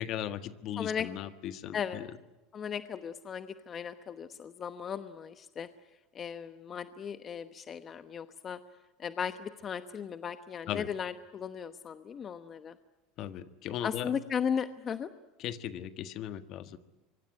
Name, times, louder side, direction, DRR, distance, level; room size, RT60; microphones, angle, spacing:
voice 1, 0.0-2.1 10.7-10.9 13.2-14.1 15.4-16.8, left 11 dB, 50° left, 11 dB, 1.5 m, -37 dB
voice 2, 0.8-1.1 1.7-2.0 2.5-5.7 6.1-8.6 9.0-12.7 13.8-15.1, left 7 dB, 30° left, 11 dB, 1.0 m, -36 dB
24.5 x 24.0 x 9.9 m, 1.0 s
supercardioid pair, 130°, 0 cm